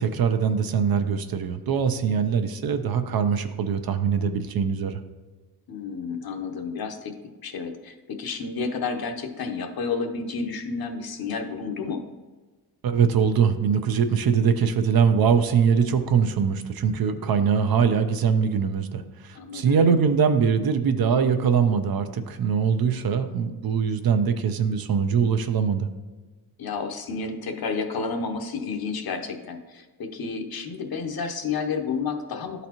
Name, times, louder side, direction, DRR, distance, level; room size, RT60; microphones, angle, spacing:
voice 1, 0.0-5.0 12.8-25.9, right 6 dB, 60° right, 9 dB, 0.6 m, -22 dB
voice 2, 5.7-7.1 7.4-12.0 19.3-19.9 26.6-32.7, left 5 dB, 60° left, 5 dB, 0.8 m, -31 dB
11.5 x 4.0 x 2.9 m, 1.3 s
wide cardioid pair, 150°, 41 cm